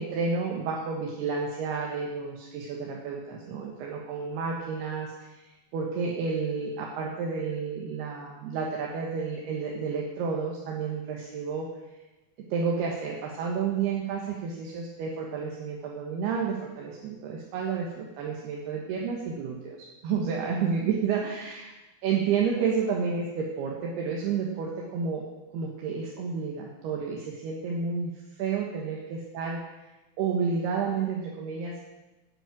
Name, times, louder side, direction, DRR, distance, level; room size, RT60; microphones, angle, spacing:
voice 1, 0.0-5.4 5.7-11.7 12.5-21.7 22.0-25.2 25.5-29.6 30.2-31.8, right 5 dB, 80° right, -1 dB, 3.4 m, -30 dB
10.5 x 8.9 x 9.0 m, 1.1 s
omnidirectional pair, 4.7 m